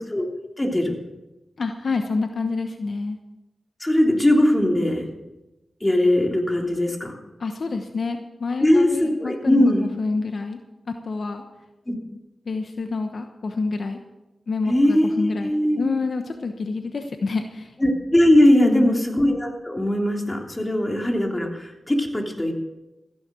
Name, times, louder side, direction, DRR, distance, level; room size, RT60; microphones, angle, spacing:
voice 1, 0.6-0.9 3.8-5.1 5.8-7.1 8.6-9.8 11.9-12.0 14.7-15.9 17.8-22.5, left 1 dB, 20° left, 1 dB, 3.3 m, -20 dB
voice 2, 1.6-3.2 7.4-10.6 10.9-11.4 12.4-14.0 14.5-17.8 18.6-19.1, left 3 dB, 70° left, 6 dB, 1.0 m, -27 dB
15.0 x 10.5 x 6.3 m, 1.0 s
cardioid pair, 45°, 0 cm